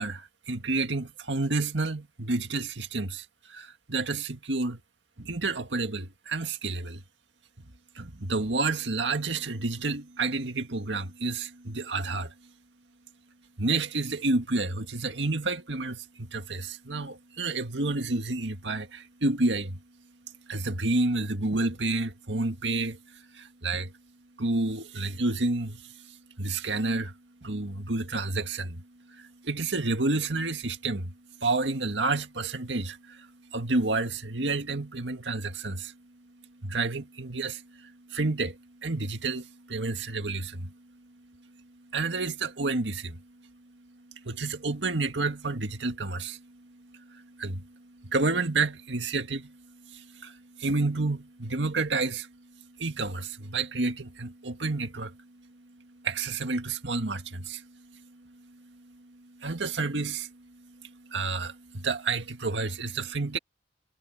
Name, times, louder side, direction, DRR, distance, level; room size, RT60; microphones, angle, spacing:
voice 1, 0.0-4.8 5.2-7.0 8.0-12.3 13.6-19.8 20.5-23.9 24.4-27.1 27.4-31.1 31.4-35.9 36.6-40.7 41.9-43.2 44.1-63.4, right 3 dB, 85° right, 1.9 m, -30 dB
head